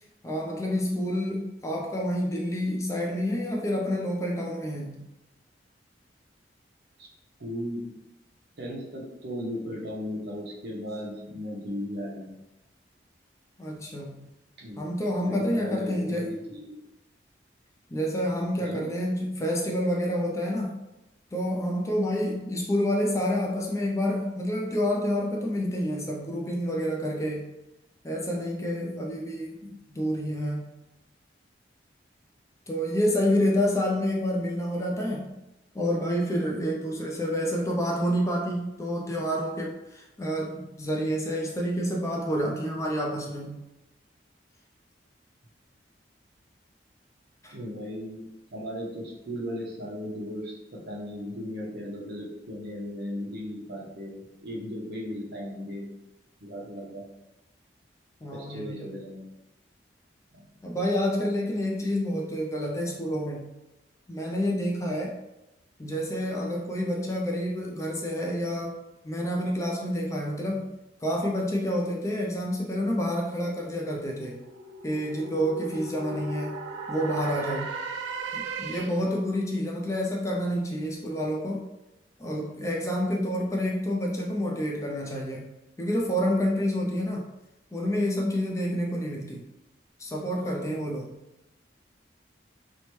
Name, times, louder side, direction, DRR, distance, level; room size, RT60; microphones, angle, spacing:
voice 1, 0.2-5.0 13.6-14.3 14.8-16.4 17.9-20.8 21.3-27.5 28.0-30.7 32.7-35.4 35.7-43.6 47.4-47.5 58.2-59.0 60.6-63.6 64.1-65.2 65.8-68.8 69.0-70.7 71.0-74.5 74.8-77.8 78.3-81.7 82.2-87.3 87.7-89.5 90.0-91.2, equal, 15° left, -1 dB, 0.4 m, -28 dB
voice 2, 7.4-7.9 8.6-12.3 14.6-14.8 15.3-16.8 18.6-18.8 47.5-48.2 48.5-55.9 56.4-57.1 58.3-59.3 60.3-60.4, equal, 60° right, -3 dB, 0.8 m, -36 dB
sound 1, 73.3-79.2, right 3 dB, 80° right, 0.3 m, -37 dB
2.8 x 2.2 x 3.0 m, 0.94 s
head